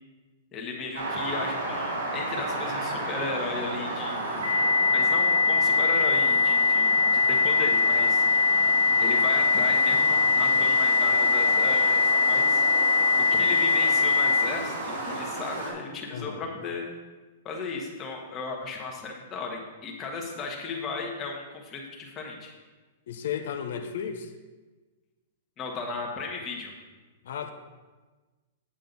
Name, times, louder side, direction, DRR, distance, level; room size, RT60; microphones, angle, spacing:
voice 1, 0.5-4.4 4.9-8.2 9.0-12.6 13.2-16.9 17.4-22.6 25.6-26.7, left 4 dB, 20° left, 0 dB, 1.3 m, -35 dB
sound 1, 0.9-15.7, right 2 dB, 90° right, 2.7 m, -33 dB
sound 2, 4.4-14.4, left 4 dB, 70° right, 1.2 m, -22 dB
voice 2, 23.1-24.3 27.2-27.5, left 8 dB, 65° left, 6 dB, 0.8 m, -33 dB
8.7 x 7.4 x 4.0 m, 1.3 s
hypercardioid pair, 160°, 0 cm